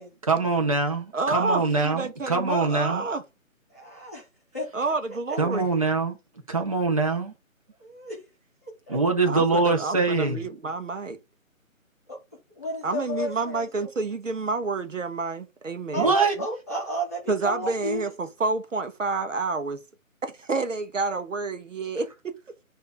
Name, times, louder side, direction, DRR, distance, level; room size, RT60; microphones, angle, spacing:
voice 1, 0.2-3.1 5.4-6.2 6.5-7.3 8.9-10.4 15.9-16.3, right 3 dB, 25° right, 0.9 m, -23 dB
voice 2, 1.1-3.2 4.7-5.7 9.3-11.2 12.8-16.1 17.3-19.8 20.2-22.3, right 3 dB, 60° right, 1.0 m, -29 dB
voice 3, 3.7-4.3 4.5-4.6 7.8-8.2 8.6-9.0 12.1-12.2 12.5-13.7 15.9-16.1 16.4-18.0, equal, 10° left, 0.8 m, -32 dB
7.7 x 2.8 x 4.6 m
figure-of-eight pair, 160°, 42 cm